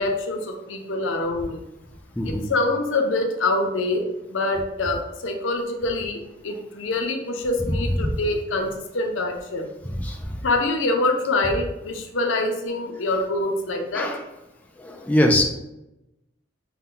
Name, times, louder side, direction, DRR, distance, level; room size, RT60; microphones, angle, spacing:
voice 1, 0.0-1.6 2.2-9.7 10.4-14.1, left 2 dB, 85° left, 3 dB, 0.6 m, -25 dB
voice 2, 2.2-2.5 7.7-8.1 10.0-10.4 13.9-14.2 14.8-15.4, left 1 dB, 10° left, 1 dB, 0.3 m, -23 dB
5.5 x 2.2 x 3.7 m, 0.91 s
head